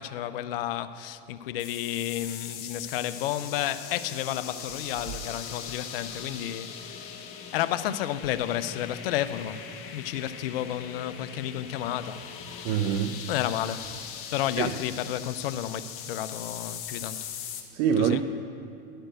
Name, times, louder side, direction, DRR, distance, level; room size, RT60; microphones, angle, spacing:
voice 1, 0.0-12.3 12.6-12.7 13.3-14.0 14.3-17.3 18.0-18.2, left 11 dB, 75° left, 0.5 m, -32 dB
sound 1, 1.6-17.6, left 8 dB, 50° left, 1.0 m, -41 dB
sound 2, 3.3-12.8, left 5 dB, 30° left, 0.7 m, -48 dB
voice 2, 12.6-13.3 14.6-14.7 17.7-18.2, right 8 dB, 55° right, 0.5 m, -25 dB
11.0 x 4.4 x 7.7 m
hypercardioid pair, 105°, 29 cm